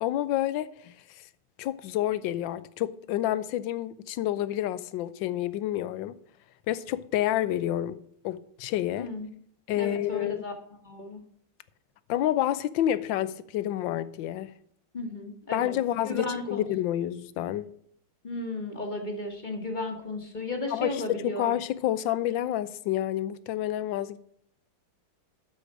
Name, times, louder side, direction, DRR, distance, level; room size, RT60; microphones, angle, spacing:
voice 1, 0.0-0.9 1.6-6.2 6.7-8.0 8.2-9.1 9.7-10.4 12.1-14.5 15.5-17.7 20.7-24.2, left 12 dB, 75° left, 1.3 m, -29 dB
voice 2, 9.0-9.3 9.7-10.5 10.8-11.2 14.9-15.7 16.0-16.6 18.2-21.5, left 2 dB, 25° left, 1.2 m, -34 dB
12.0 x 4.9 x 6.1 m
omnidirectional pair, 2.2 m